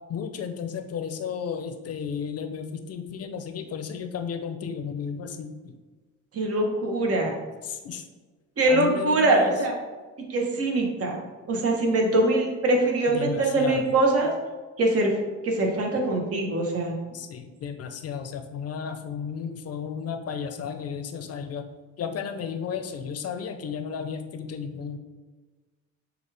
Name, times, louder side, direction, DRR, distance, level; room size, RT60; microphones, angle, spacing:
voice 1, 0.1-5.5 7.6-8.1 8.7-9.6 13.1-13.9 17.1-21.6 22.0-25.0, left 7 dB, 55° left, 7 dB, 0.6 m, -33 dB
voice 2, 6.3-7.3 8.6-9.7 10.3-11.2 11.5-14.3 14.8-15.1 15.4-16.9, right 2 dB, 50° right, 1 dB, 1.0 m, -23 dB
6.6 x 2.4 x 3.3 m, 1.3 s
cardioid pair, 90°, 30 cm